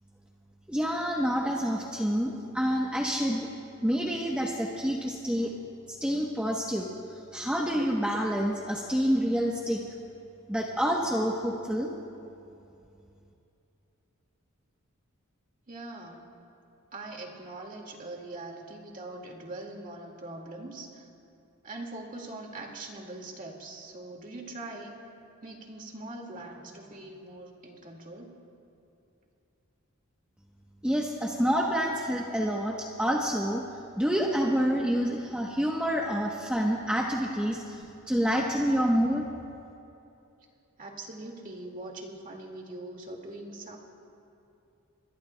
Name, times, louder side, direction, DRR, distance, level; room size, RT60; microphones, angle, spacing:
voice 1, 0.7-3.5 3.8-5.5 5.9-6.9 7.3-9.8 10.5-11.9 30.8-33.6 34.0-39.3, equal, 5° right, -2 dB, 0.9 m, -28 dB
voice 2, 15.7-16.3 16.9-21.1 21.6-24.9 25.4-28.3 40.8-43.8, right 2 dB, 40° right, 1 dB, 2.0 m, -42 dB
29.5 x 21.5 x 2.2 m, 2.7 s
head